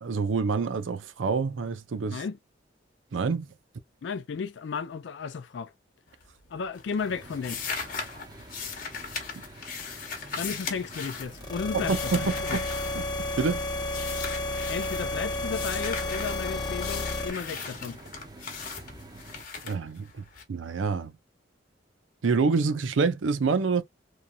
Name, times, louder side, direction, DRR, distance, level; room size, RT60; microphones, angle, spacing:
voice 1, 0.0-2.2 3.1-3.5 11.7-12.6 12.9-13.0 13.4-13.6 19.6-21.1 22.2-23.8, right 4 dB, 85° right, 0.5 m, -27 dB
voice 2, 4.0-5.7 6.5-7.6 10.4-12.6 14.7-18.0, left 5 dB, 65° left, 0.4 m, -34 dB
sound 1, 6.1-6.5 6.8-13.5 13.9-15.1 15.5-20.4, left 5 dB, 50° left, 1.0 m, -38 dB
sound 2, 7.0-19.4, right 2 dB, 20° right, 0.7 m, -48 dB
sound 3, 11.3-17.3, left 2 dB, 20° left, 0.9 m, -31 dB
3.0 x 2.7 x 2.2 m
head